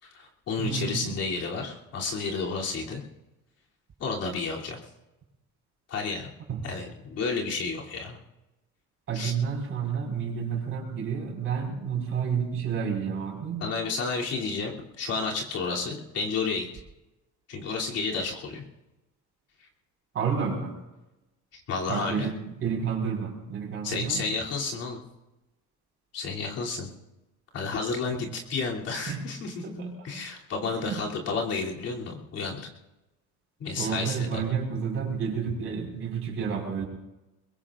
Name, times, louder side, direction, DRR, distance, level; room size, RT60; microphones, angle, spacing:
voice 1, 0.0-3.0 4.0-4.8 5.9-6.3 6.6-8.2 9.1-9.3 13.6-16.7 17.5-18.6 19.6-19.7 21.5-22.3 23.8-25.0 26.1-26.9 27.5-32.7 33.6-34.4, left 4 dB, 45° left, -2 dB, 3.1 m, -31 dB
voice 2, 0.6-1.2 6.5-6.6 9.1-13.7 20.1-20.8 21.9-24.3 28.2-28.3 29.1-29.2 29.6-29.9 30.6-31.0 33.8-36.8, right 6 dB, 40° right, 0 dB, 5.1 m, -30 dB
22.0 x 22.0 x 2.5 m, 1.0 s
cardioid pair, 130°, 33 cm